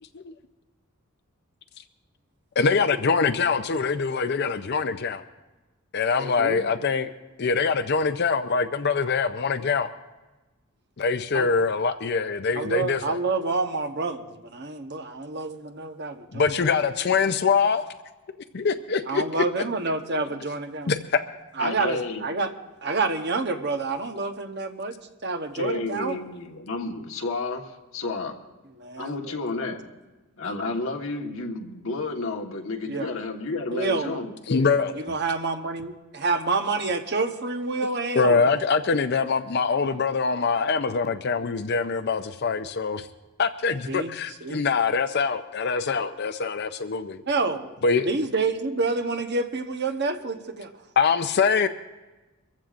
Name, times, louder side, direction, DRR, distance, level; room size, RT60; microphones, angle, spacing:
voice 1, 2.6-5.2 5.9-7.1 7.4-9.9 11.0-13.2 16.3-17.9 18.5-19.2 20.9-21.2 34.5-34.9 38.1-43.1 43.4-47.2 47.8-48.0 51.0-51.7, left 5 dB, 50° left, 9 dB, 0.5 m, -24 dB
voice 2, 6.2-6.6 11.3-11.5 12.6-16.5 19.1-20.9 21.6-22.5 22.8-26.2 28.8-29.4 32.9-33.1 33.7-34.2 34.9-38.6 43.9-44.1 44.4-44.6 47.3-47.7 48.0-50.7, right 3 dB, 50° right, 6 dB, 1.0 m, -28 dB
voice 3, 21.6-22.2 25.5-28.4 29.0-29.8 30.4-34.7, left 3 dB, 70° left, 2 dB, 1.4 m, -31 dB
24.5 x 15.0 x 2.5 m, 1.1 s
head